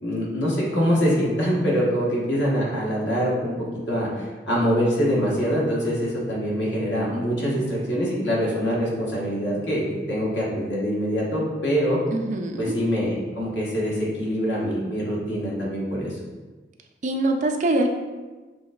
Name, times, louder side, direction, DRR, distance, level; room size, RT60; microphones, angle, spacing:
voice 1, 0.0-12.0 12.6-16.2, equal, 80° left, -5 dB, 1.4 m, -24 dB
voice 2, 12.1-12.8 17.0-17.9, right 2 dB, 40° right, 3 dB, 0.4 m, -23 dB
6.9 x 3.1 x 2.4 m, 1.3 s
head